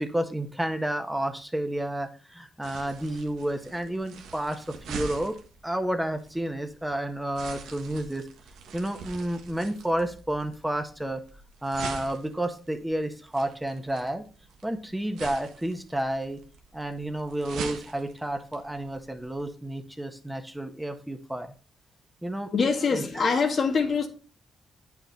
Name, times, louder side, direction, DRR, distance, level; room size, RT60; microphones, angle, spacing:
voice 1, 0.0-5.4 5.6-8.3 8.7-11.2 11.6-14.2 14.6-16.4 16.7-21.5 22.2-22.5 22.9-23.0, right 1 dB, 10° right, 1.4 m, -31 dB
sound 1, 2.6-19.5, right 6 dB, 85° right, 1.4 m, -44 dB
voice 2, 22.5-24.1, left 5 dB, 55° left, 1.9 m, -24 dB
8.7 x 6.1 x 4.3 m
supercardioid pair, 55°, 0 cm